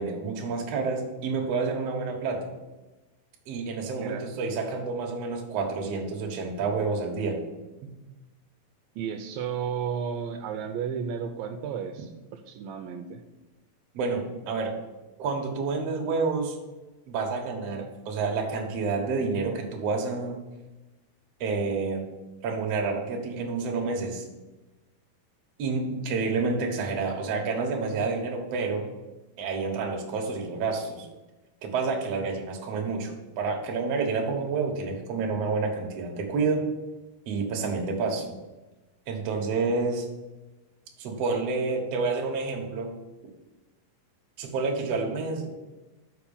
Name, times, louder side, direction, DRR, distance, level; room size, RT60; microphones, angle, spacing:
voice 1, 0.0-2.5 3.5-7.4 7.8-7.9 13.9-14.8 15.2-16.6 17.1-20.4 21.4-22.0 22.4-24.2 25.6-28.9 29.4-31.1 31.6-36.7 37.3-38.3 39.1-40.1 41.0-43.0 44.4-45.5, right 4 dB, 55° right, 1 dB, 2.2 m, -29 dB
voice 2, 9.0-13.2, right 7 dB, 80° right, 5 dB, 2.4 m, -33 dB
6.7 x 6.0 x 7.0 m, 1.1 s
omnidirectional pair, 4.1 m